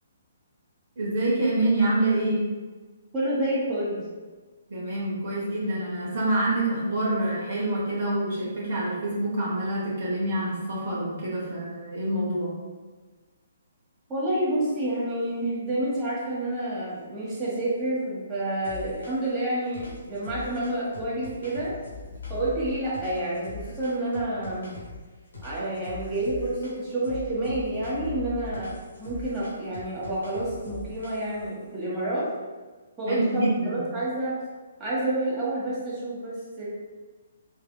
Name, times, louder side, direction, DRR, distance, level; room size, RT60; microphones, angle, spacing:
voice 1, 1.0-2.4 4.7-12.5 33.1-33.8, right 1 dB, 55° right, -7 dB, 1.1 m, -26 dB
voice 2, 3.1-4.0 14.1-21.7 22.3-24.7 25.4-28.7 29.0-32.3 33.0-34.4 34.8-36.7, right 1 dB, 20° right, -9 dB, 1.4 m, -29 dB
sound 1, 18.6-19.4 19.7-25.0 25.3-26.8 27.0-31.5, left 3 dB, 70° left, 1.4 m, -41 dB
4.1 x 2.7 x 2.3 m, 1.3 s
figure-of-eight pair, 130°, 0 cm